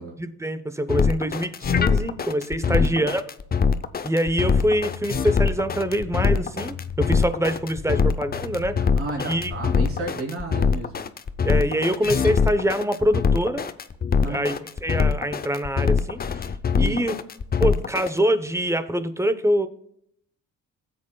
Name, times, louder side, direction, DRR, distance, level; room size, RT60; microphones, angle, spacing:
voice 1, 0.2-3.2 4.0-8.8 9.2-9.5 11.4-13.7 14.3-16.5 16.8-17.2 17.6-19.7, equal, 10° right, 11 dB, 0.8 m, -24 dB
sound 1, 0.9-18.1, left 6 dB, 30° left, 0.6 m, -22 dB
sound 2, 4.4-10.1, left 7 dB, 75° left, 1.1 m, -38 dB
voice 2, 8.8-11.0 14.2-14.5 16.7-17.1, right 2 dB, 45° right, -1 dB, 3.4 m, -32 dB
17.0 x 7.7 x 2.3 m, 0.73 s
cardioid pair, 90°, 30 cm